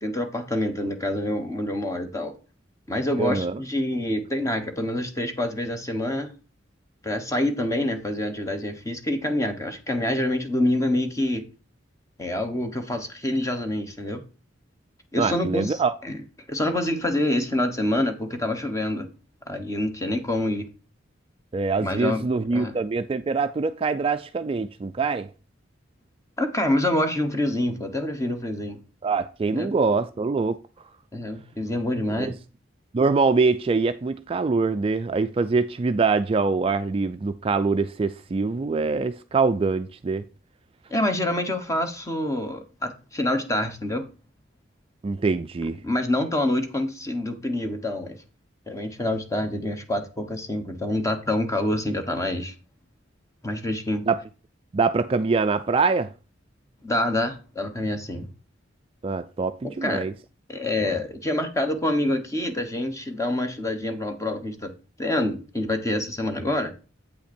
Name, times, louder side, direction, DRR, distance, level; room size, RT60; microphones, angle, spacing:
voice 1, 0.0-2.3 2.9-6.3 7.0-11.4 12.2-14.2 15.1-16.2 16.5-19.1 19.5-20.7 21.8-22.2 22.5-22.7 26.4-28.8 29.5-29.7 31.1-32.3 40.9-44.1 45.8-48.2 48.7-52.5 53.4-54.1 56.8-58.3 59.6-60.0 60.5-64.7 65.0-66.7, left 1 dB, 15° left, 1.1 m, -26 dB
voice 2, 3.2-3.6 15.2-15.9 21.5-25.3 29.0-30.6 32.2-32.3 32.9-40.2 45.0-45.8 54.1-54.2 54.7-56.1 59.0-60.1 60.8-60.9, right 4 dB, 30° right, 0.3 m, -24 dB
8.4 x 5.7 x 4.3 m
head